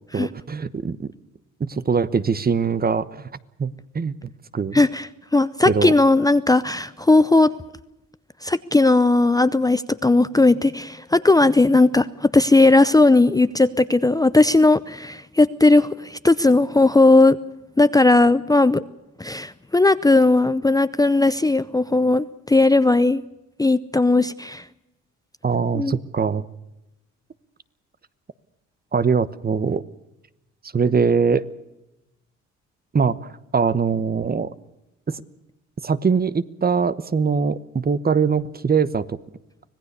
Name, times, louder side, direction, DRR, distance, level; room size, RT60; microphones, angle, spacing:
voice 1, 0.1-1.1 1.6-3.3 3.6-4.1 4.5-4.8 5.6-5.9 25.4-26.4 28.9-29.8 30.7-31.5 32.9-34.5 35.1-35.2 35.8-39.2, right 5 dB, 30° right, 15 dB, 1.1 m, -22 dB
voice 2, 4.7-7.5 8.4-17.4 17.8-18.8 19.2-23.2 23.6-24.6 25.7-26.0, left 2 dB, 10° left, 13 dB, 0.7 m, -17 dB
25.5 x 18.0 x 6.8 m, 0.93 s
cardioid pair, 90°, 30 cm